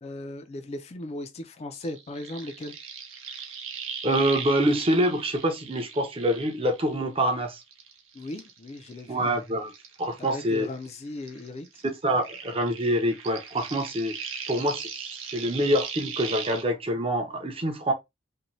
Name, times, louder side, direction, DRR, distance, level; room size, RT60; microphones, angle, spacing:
voice 1, 0.0-2.8 8.1-9.3 10.2-11.8, left 1 dB, 35° left, 0.4 m, -37 dB
sound 1, 1.7-7.3 7.6-11.0 11.2-16.6, right 7 dB, 85° right, 0.6 m, -39 dB
voice 2, 4.0-7.6 9.1-9.7 10.0-10.7 12.0-14.2 14.5-14.9 15.3-17.9, right 1 dB, 30° right, 0.6 m, -25 dB
2.6 x 2.1 x 3.0 m
head